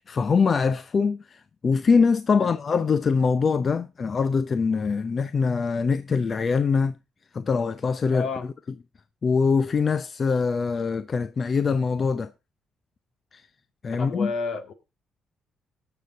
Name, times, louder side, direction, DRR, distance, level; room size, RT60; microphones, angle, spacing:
voice 1, 0.0-6.9 7.3-8.3 9.2-12.3 13.3-13.4 13.8-14.3, left 5 dB, 40° left, 0.6 m, -23 dB
voice 2, 8.1-8.5 14.0-14.7, left 4 dB, 65° left, 2.0 m, -30 dB
19.5 x 6.8 x 3.9 m
cardioid pair, 90°, 0 cm